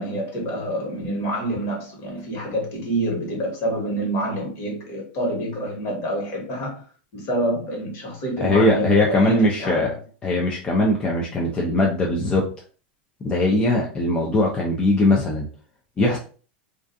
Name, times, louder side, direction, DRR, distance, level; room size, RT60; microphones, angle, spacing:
voice 1, 0.0-6.8 7.1-10.0, right 1 dB, 45° left, 1.3 m, -27 dB
voice 2, 8.4-9.9 10.2-12.4 13.2-15.5 16.0-16.2, left 1 dB, 20° left, 0.5 m, -20 dB
2.4 x 2.3 x 2.6 m
supercardioid pair, 130°, 6 cm